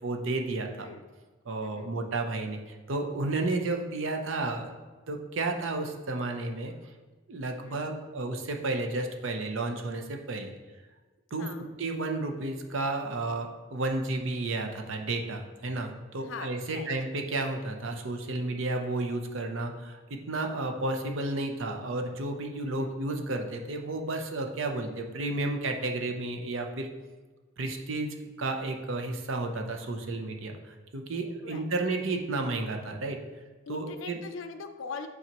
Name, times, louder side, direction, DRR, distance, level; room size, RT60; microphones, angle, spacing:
voice 1, 0.0-0.9 1.5-4.7 5.1-6.7 7.3-10.5 11.3-11.5 11.8-26.9 27.6-28.1 28.4-30.6 30.9-33.2 33.7-34.2, right 2 dB, 75° right, 3 dB, 0.7 m, -32 dB
voice 2, 0.8-1.1 1.6-1.9 3.7-3.8 7.6-8.0 11.4-11.7 16.2-16.9 22.6-23.0 31.4-31.7 33.7-35.1, left 4 dB, 75° left, 8 dB, 0.5 m, -42 dB
9.0 x 3.9 x 3.0 m, 1.3 s
head